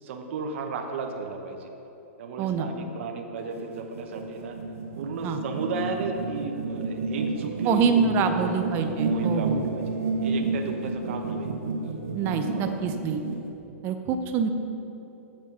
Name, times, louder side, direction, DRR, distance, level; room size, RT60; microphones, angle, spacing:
voice 1, 0.0-1.7 2.2-4.6 5.0-8.5 9.0-9.8 10.2-11.5 12.5-12.8, right 4 dB, 55° right, 3 dB, 1.0 m, -34 dB
sound 1, 3.4-13.5, right 3 dB, 80° right, 1.6 m, -31 dB
voice 2, 7.6-9.6 12.1-13.2 13.8-14.5, right 6 dB, 30° right, 7 dB, 0.6 m, -25 dB
7.4 x 7.1 x 6.0 m, 3.0 s
hypercardioid pair, 155°, 8 cm